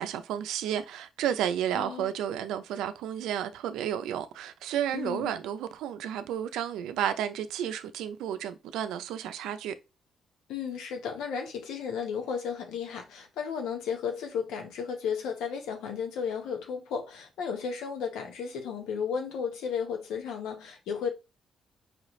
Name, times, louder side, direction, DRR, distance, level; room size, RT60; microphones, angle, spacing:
voice 1, 0.0-9.7, right 10 dB, 90° right, 0.4 m, -32 dB
voice 2, 1.7-2.1 4.9-5.3 10.5-21.1, left 6 dB, 85° left, 1.0 m, -34 dB
4.8 x 2.5 x 3.1 m
cardioid pair, 90°, 0 cm